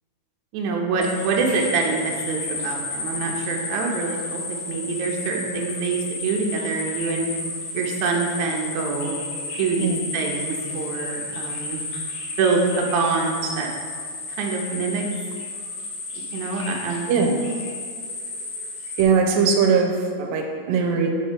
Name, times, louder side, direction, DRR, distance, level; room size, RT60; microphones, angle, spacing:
voice 1, 0.5-7.3 7.7-9.2 9.6-11.8 12.4-13.7 14.3-15.0 16.1-17.1 19.2-19.3, right 4 dB, 70° right, 0 dB, 2.1 m, -25 dB
sound 1, 1.0-19.0, left 3 dB, 70° left, 2.7 m, -32 dB
voice 2, 17.1-17.4 19.0-21.1, right 5 dB, 90° right, 2 dB, 2.3 m, -20 dB
7.3 x 4.2 x 5.1 m, 2.1 s
omnidirectional pair, 3.9 m